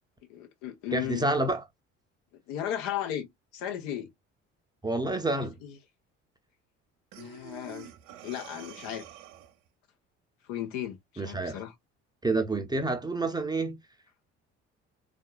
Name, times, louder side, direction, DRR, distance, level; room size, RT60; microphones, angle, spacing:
voice 1, 0.3-1.3 2.5-3.3 3.5-4.1 5.4-5.8 7.2-7.9 8.2-9.0 10.5-11.7, left 11 dB, 60° left, 0.9 m, -35 dB
voice 2, 0.9-1.6 4.8-5.6 11.2-11.6 12.2-13.8, right 2 dB, 10° right, 0.7 m, -28 dB
Breathing, 7.1-9.7, right 10 dB, 65° right, 0.6 m, -48 dB
3.6 x 2.5 x 2.2 m
figure-of-eight pair, 55°, 37 cm